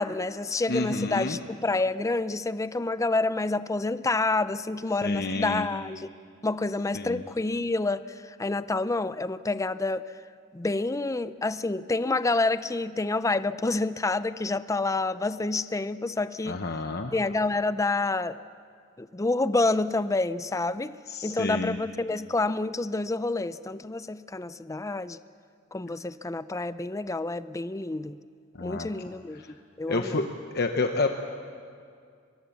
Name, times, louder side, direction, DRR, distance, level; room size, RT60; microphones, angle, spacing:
voice 1, 0.0-6.1 6.4-10.0 10.5-16.6 17.1-18.4 19.0-20.9 21.2-25.2 25.7-28.2 28.6-29.4 29.8-30.3, left 2 dB, 15° left, 14 dB, 0.5 m, -28 dB
voice 2, 0.7-1.4 5.0-5.7 6.9-7.2 16.4-17.1 21.1-21.8 28.6-28.9 29.9-30.2 30.5-31.1, left 3 dB, 55° left, 5 dB, 1.0 m, -29 dB
23.5 x 22.5 x 7.2 m, 2.3 s
head